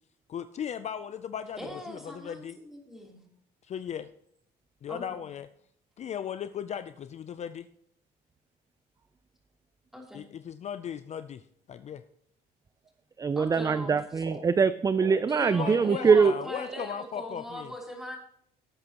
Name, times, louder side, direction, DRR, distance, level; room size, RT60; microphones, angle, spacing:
voice 1, 0.3-2.6 3.6-4.1 4.8-5.5 6.0-7.7 10.1-11.4 11.7-12.0 15.4-17.7, left 8 dB, 40° left, 12 dB, 0.5 m, -37 dB
voice 2, 1.6-3.2 4.9-5.2 9.9-10.2 13.4-14.0 15.3-18.2, equal, ahead, -1 dB, 3.4 m, -40 dB
voice 3, 13.2-16.3, right 5 dB, 20° right, 14 dB, 0.4 m, -23 dB
sound 1, 13.5-13.7 14.1-14.5 14.9-15.2 15.8-16.0 16.7-17.0, right 5 dB, 80° right, 3.2 m, -42 dB
18.0 x 8.5 x 3.0 m, 0.70 s
cardioid pair, 110°, 17 cm